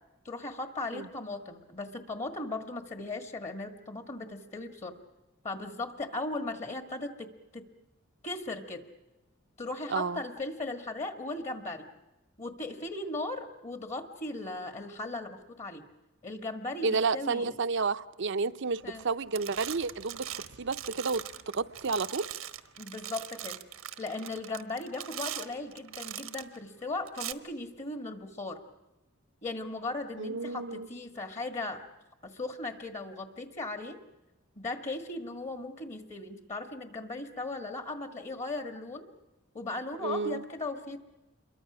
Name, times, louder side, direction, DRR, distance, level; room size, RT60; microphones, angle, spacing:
voice 1, 0.2-4.9 5.4-7.6 8.2-8.8 9.6-11.9 12.4-15.8 16.2-17.6 18.8-19.0 22.8-23.6 24.0-28.6 29.4-31.9 32.2-34.0 34.5-39.1 39.5-41.0, left 2 dB, 35° left, 1.7 m, -37 dB
voice 2, 9.9-10.2 16.8-21.3 21.5-22.3 30.2-30.9 40.0-40.4, right 4 dB, 65° right, 0.7 m, -31 dB
sound 1, 18.8-19.1 19.3-26.6 27.1-27.3, right 11 dB, 90° right, 1.3 m, -41 dB
28.0 x 23.0 x 6.2 m
head